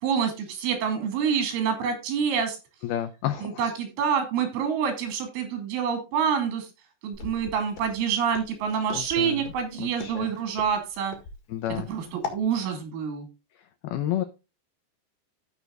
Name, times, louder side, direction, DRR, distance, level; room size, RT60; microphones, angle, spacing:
voice 1, 0.0-2.6 3.4-6.7 7.0-11.2 11.8-13.3, right 7 dB, 80° right, 5 dB, 4.9 m, -27 dB
voice 2, 2.8-3.7 8.9-9.4 9.8-10.3 11.5-11.9 13.8-14.2, left 11 dB, 85° left, 9 dB, 2.2 m, -30 dB
Walk footsteps, 7.1-12.5, left 5 dB, 55° left, 3.0 m, -40 dB
15.0 x 6.4 x 2.4 m, 0.28 s
omnidirectional pair, 5.4 m